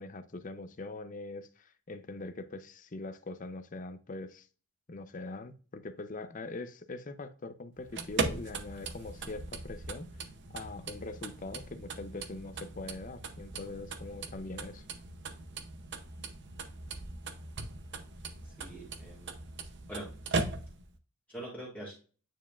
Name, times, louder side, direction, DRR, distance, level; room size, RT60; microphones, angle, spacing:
voice 1, 0.0-4.5 4.9-10.1 10.5-14.8, left 2 dB, 35° left, 0.5 m, -42 dB
sound 1, 7.8-21.0, right 3 dB, 50° right, 0.7 m, -39 dB
voice 2, 18.4-19.3 19.9-20.1 21.3-21.9, right 1 dB, 5° left, 1.8 m, -43 dB
9.1 x 4.7 x 2.4 m
head